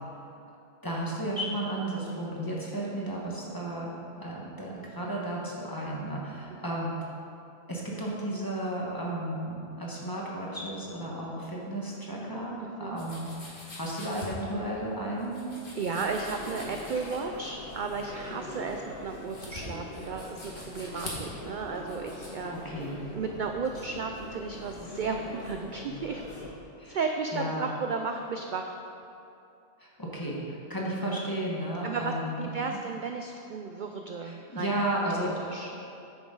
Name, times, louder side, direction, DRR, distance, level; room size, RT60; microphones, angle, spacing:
voice 1, 0.8-3.9 4.2-6.9 7.7-15.4 22.5-23.0 26.8-27.0 27.3-27.7 29.8-32.8 34.2-35.4, right 1 dB, 20° left, -4 dB, 1.4 m, -33 dB
voice 2, 12.6-13.0 15.7-22.6 23.1-26.2 26.8-28.7 31.8-34.7 35.4-35.7, right 4 dB, 60° right, 4 dB, 0.5 m, -34 dB
sound 1, 13.0-22.3, left 1 dB, 45° left, 1.8 m, -45 dB
sound 2, 15.9-26.5, left 2 dB, 90° left, 1.5 m, -43 dB
9.9 x 7.1 x 3.9 m, 2.7 s
omnidirectional pair, 1.2 m